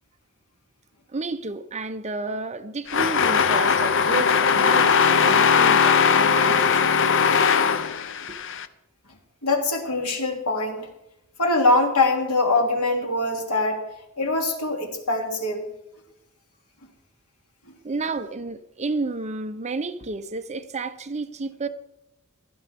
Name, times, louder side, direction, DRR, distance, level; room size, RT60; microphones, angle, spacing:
voice 1, 1.1-7.0 17.8-21.7, right 3 dB, 30° right, 0.8 m, -31 dB
sound 1, 2.9-8.7, left 6 dB, 60° left, 0.8 m, -19 dB
voice 2, 9.4-10.9 11.4-13.8 14.2-15.6, left 2 dB, 90° left, 2.9 m, -23 dB
17.0 x 13.0 x 3.6 m
head